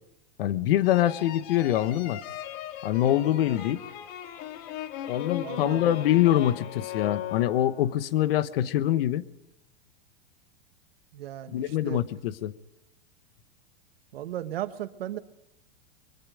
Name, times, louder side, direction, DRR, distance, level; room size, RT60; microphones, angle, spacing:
voice 1, 0.4-2.2 2.8-3.8 5.1-9.2 11.5-12.5, left 12 dB, 70° left, 14 dB, 1.3 m, -24 dB
sound 1, 0.8-8.0, left 10 dB, 55° left, 2.1 m, -38 dB
voice 2, 5.4-5.9 11.1-12.0 14.1-15.2, right 12 dB, 80° right, 10 dB, 1.5 m, -36 dB
25.5 x 22.5 x 5.1 m, 0.89 s
hypercardioid pair, 115°, 29 cm